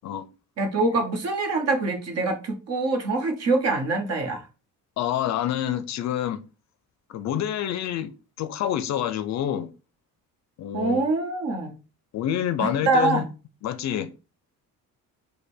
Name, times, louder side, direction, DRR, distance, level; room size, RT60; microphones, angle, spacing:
voice 1, 0.6-4.5 10.7-11.8 12.6-13.3, right 3 dB, 45° right, 1.1 m, -24 dB
voice 2, 5.0-6.4 7.1-8.1 8.4-9.7 10.6-11.0 12.1-13.2 13.6-14.1, left 10 dB, 55° left, 0.5 m, -27 dB
5.1 x 2.2 x 4.3 m
cardioid pair, 155°, 34 cm